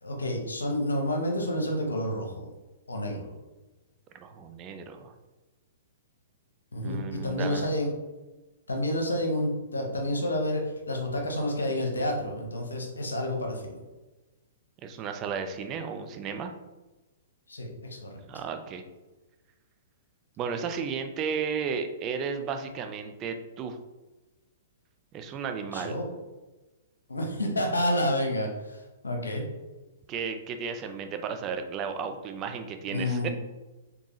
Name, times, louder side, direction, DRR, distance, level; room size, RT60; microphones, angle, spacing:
voice 1, 0.0-2.5 2.9-3.3 6.7-7.9 8.7-13.8 17.5-18.2 25.7-26.1 27.1-29.4 32.9-33.3, left 1 dB, 80° left, 1 dB, 1.0 m, -29 dB
voice 2, 4.2-5.1 6.8-7.7 14.8-16.5 18.3-18.8 20.4-23.8 25.1-26.0 30.1-33.3, right 6 dB, 30° right, 6 dB, 0.5 m, -34 dB
3.9 x 3.6 x 3.0 m, 1.1 s
figure-of-eight pair, 115°, 0 cm